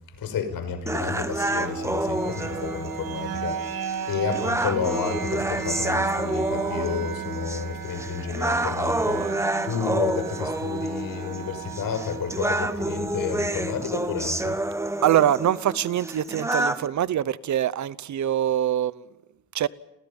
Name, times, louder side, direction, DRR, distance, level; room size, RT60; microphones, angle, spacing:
voice 1, 0.2-9.3 9.6-14.6, left 6 dB, 75° left, 5.9 m, -31 dB
sound 1, 0.9-16.9, right 2 dB, 10° right, 1.4 m, -29 dB
sound 2, 1.1-15.1, right 8 dB, 75° right, 2.9 m, -36 dB
voice 2, 15.0-19.0 19.5-19.7, right 11 dB, 55° right, 0.9 m, -24 dB
30.0 x 23.5 x 5.5 m
cardioid pair, 145°, 35 cm